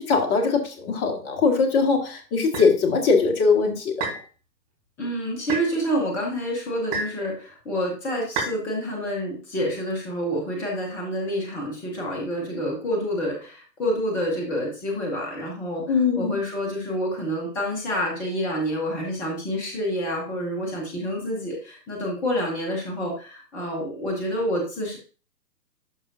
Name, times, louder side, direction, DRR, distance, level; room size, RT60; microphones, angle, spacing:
voice 1, 0.0-4.1 15.9-16.4, left 4 dB, 20° left, 2 dB, 1.6 m, -21 dB
sound 1, 2.5-2.7 4.0-4.3 5.5-5.7 6.9-7.2 8.4-8.6, right 4 dB, 30° right, 3.8 m, -29 dB
voice 2, 5.0-25.0, equal, 5° left, -2 dB, 0.6 m, -28 dB
11.5 x 5.5 x 2.6 m, 0.38 s
hypercardioid pair, 135°, 50 cm